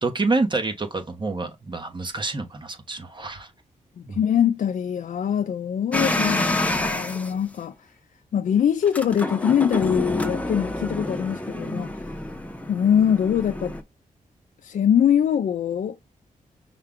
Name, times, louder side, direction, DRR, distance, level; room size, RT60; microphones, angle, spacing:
voice 1, 0.0-3.5 4.1-4.2, right 3 dB, 35° right, 1.1 m, -27 dB
voice 2, 4.0-7.7 8.3-11.9 12.7-13.8 14.6-16.0, left 8 dB, 65° left, 0.4 m, -23 dB
sound 1, 5.9-7.3 8.8-13.8, left 1 dB, 10° left, 0.8 m, -28 dB
5.6 x 2.3 x 3.6 m
wide cardioid pair, 100°, 14 cm